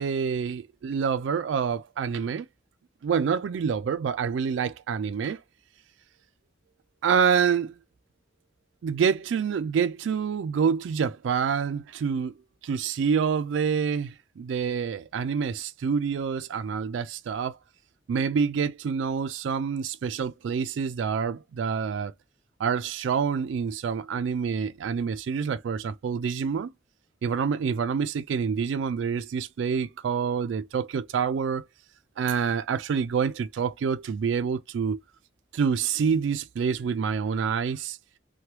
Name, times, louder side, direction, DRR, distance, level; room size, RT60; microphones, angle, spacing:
voice 1, 0.0-2.5 3.0-5.4 7.0-7.7 8.8-12.3 12.6-17.6 18.1-22.1 22.6-26.7 27.2-31.6 32.2-35.0 35.5-38.0, right 6 dB, 85° right, 0.3 m, -27 dB
3.0 x 2.2 x 2.8 m
head